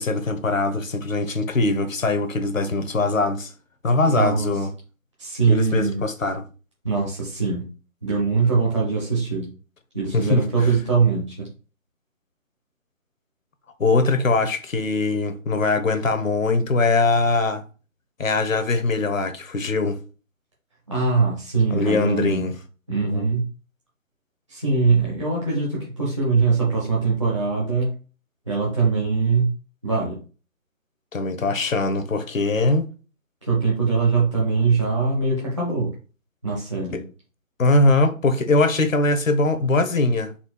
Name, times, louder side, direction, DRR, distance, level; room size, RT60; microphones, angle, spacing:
voice 1, 0.0-3.5 3.8-4.7 5.5-6.4 10.1-10.4 13.8-17.6 18.2-20.0 21.7-22.5 23.1-23.3 31.1-32.8 37.6-40.3, left 2 dB, 70° left, 0.9 m, -21 dB
voice 2, 4.1-4.5 5.2-6.0 6.8-7.7 8.0-9.5 9.9-11.5 20.9-22.5 22.9-23.5 24.5-27.9 28.5-29.5 29.8-30.2 33.4-35.9 36.4-37.0, right 4 dB, 20° right, 0.7 m, -22 dB
4.2 x 2.7 x 4.4 m
figure-of-eight pair, 165°, 41 cm